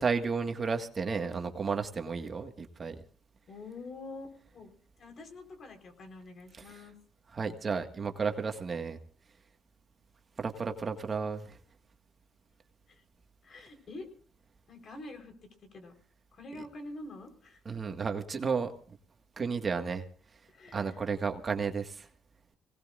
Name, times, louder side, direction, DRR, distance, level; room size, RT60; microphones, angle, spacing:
voice 1, 0.0-2.9 6.5-6.6 7.3-9.0 10.4-11.5 17.6-18.7 19.4-20.0 20.7-22.1, right 5 dB, 40° right, 5 dB, 1.8 m, -32 dB
voice 2, 3.5-4.7 5.0-6.9 12.9-13.0 13.4-14.1 14.7-15.9 16.3-17.6 20.5-21.1, left 2 dB, 55° left, 4 dB, 4.4 m, -46 dB
27.0 x 18.5 x 2.6 m, 0.42 s
cardioid pair, 90°, 0 cm